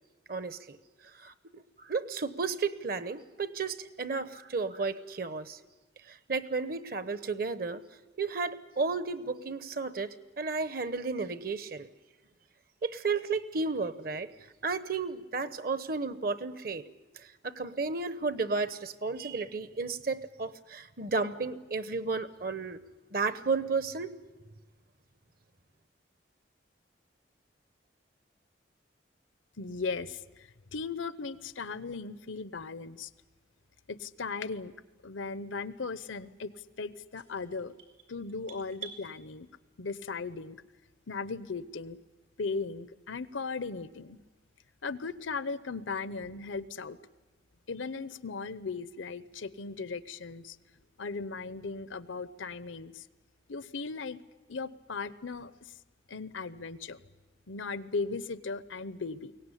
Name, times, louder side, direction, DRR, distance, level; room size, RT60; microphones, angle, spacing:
voice 1, 0.3-0.8 1.2-1.3 1.8-5.6 6.1-7.8 8.2-10.1 10.4-11.9 12.8-14.3 14.6-16.8 17.2-22.8 23.1-24.1, right 4 dB, 50° right, 14 dB, 0.9 m, -33 dB
voice 2, 29.6-33.1 33.9-34.7 35.0-37.7 38.1-39.5 39.8-40.6 41.1-42.0 42.4-44.2 44.8-47.0 47.7-50.6 51.0-53.1 53.5-54.2 54.5-55.7 56.1-57.0 57.5-59.3, left 4 dB, 85° left, 16 dB, 0.8 m, -37 dB
sound 1, 37.1-39.0, right 9 dB, 80° right, 4.5 m, -47 dB
23.0 x 18.0 x 9.9 m, 1.2 s
head